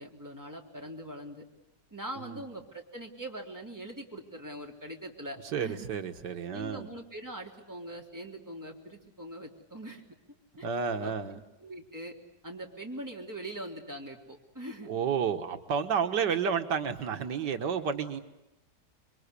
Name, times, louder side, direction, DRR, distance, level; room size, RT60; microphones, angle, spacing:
voice 1, 0.0-1.5 1.9-5.9 6.5-10.0 10.6-10.7 11.0-12.2 12.4-14.9, right 1 dB, 10° right, 0 dB, 3.6 m, -42 dB
voice 2, 5.5-6.9 10.6-11.4 14.9-18.2, right 6 dB, 90° right, 8 dB, 2.0 m, -31 dB
28.0 x 23.0 x 8.3 m, 0.93 s
omnidirectional pair, 1.8 m